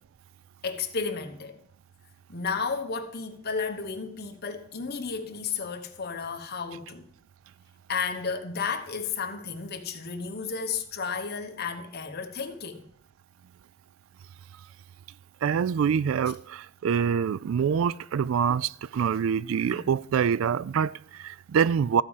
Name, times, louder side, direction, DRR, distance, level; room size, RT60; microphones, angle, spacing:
voice 1, 0.6-1.6 2.3-7.1 7.9-12.8 19.6-19.8, left 5 dB, 50° left, 1.2 m, -33 dB
voice 2, 15.4-22.0, right 7 dB, 70° right, 0.3 m, -25 dB
14.0 x 4.9 x 7.2 m
head